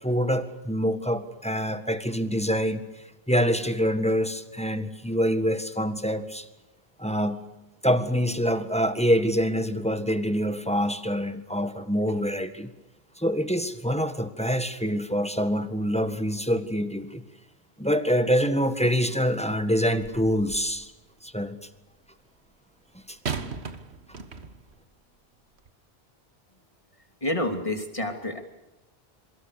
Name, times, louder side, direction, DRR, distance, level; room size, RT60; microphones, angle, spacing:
voice 1, 0.0-6.5 7.0-7.4 7.8-12.7 13.2-17.2 17.8-20.9 21.2-21.6 23.1-23.2, equal, 5° left, 9 dB, 1.7 m, -25 dB
sound 1, 20.0-20.8 23.2-24.8 25.6-25.7, right 5 dB, 85° right, 1.8 m, -36 dB
voice 2, 27.2-28.4, left 1 dB, 30° left, 5 dB, 3.1 m, -28 dB
27.0 x 24.5 x 6.9 m, 1.0 s
omnidirectional pair, 1.1 m